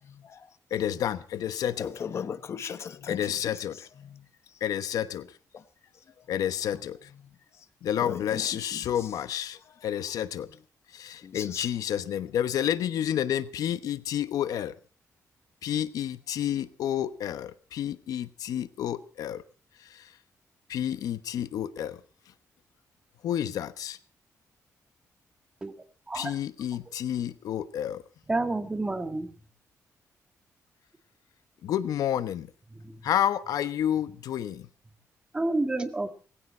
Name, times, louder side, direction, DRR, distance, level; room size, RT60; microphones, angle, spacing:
voice 1, 0.7-1.9 3.1-3.9 4.6-5.3 6.3-7.1 7.8-10.5 10.9-14.7 15.6-19.4 19.9-20.1 20.7-22.0 23.2-24.0 26.1-28.0 31.6-32.5 33.0-34.7, left 10 dB, 85° left, 1.0 m, -30 dB
voice 2, 1.8-3.2 8.0-8.4 11.3-11.6, left 7 dB, 50° left, 1.1 m, -35 dB
voice 3, 28.3-29.3 32.7-33.1 35.3-36.2, right 2 dB, 15° right, 1.8 m, -29 dB
19.0 x 16.5 x 4.4 m
wide cardioid pair, 145°, 6 cm